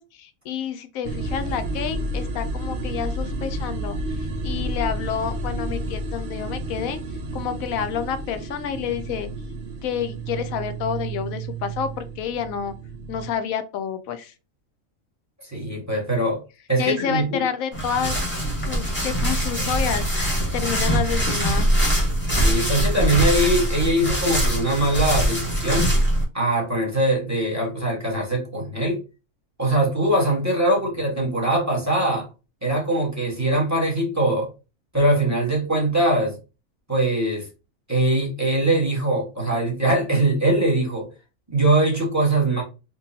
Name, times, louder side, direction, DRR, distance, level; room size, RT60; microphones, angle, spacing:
voice 1, 0.0-4.0 4.4-7.0 7.3-9.3 9.8-12.7 13.1-14.3 16.8-18.2 18.6-21.7, left 8 dB, 75° left, 1.0 m, -29 dB
sound 1, 1.0-13.4, right 2 dB, 60° right, 0.6 m, -31 dB
voice 2, 15.4-16.4 16.7-17.4 22.4-25.9 26.3-29.0 29.6-32.3 32.6-34.5 34.9-36.3 36.9-37.5 37.9-41.1 41.5-42.6, right 1 dB, 10° right, 1.4 m, -22 dB
sound 2, 17.7-26.2, right 1 dB, 10° left, 1.1 m, -22 dB
4.5 x 2.6 x 2.7 m
omnidirectional pair, 1.5 m